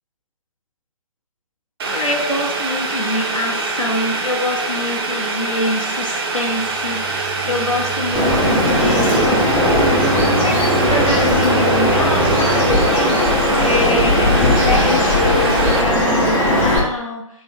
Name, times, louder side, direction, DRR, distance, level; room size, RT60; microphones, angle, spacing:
Boiling, 1.8-15.8, right 3 dB, 45° right, 0.8 m, -24 dB
voice 1, 1.9-7.1 7.4-9.5 10.4-17.4, left 1 dB, 80° left, 0 dB, 0.8 m, -25 dB
sound 1, 6.4-13.3, right 2 dB, 45° left, 0.8 m, -27 dB
Bird vocalization bird call bird song, 8.1-16.8, left 1 dB, 15° left, 0.9 m, -17 dB
3.9 x 2.8 x 4.3 m, 0.81 s
figure-of-eight pair, 130°, 17 cm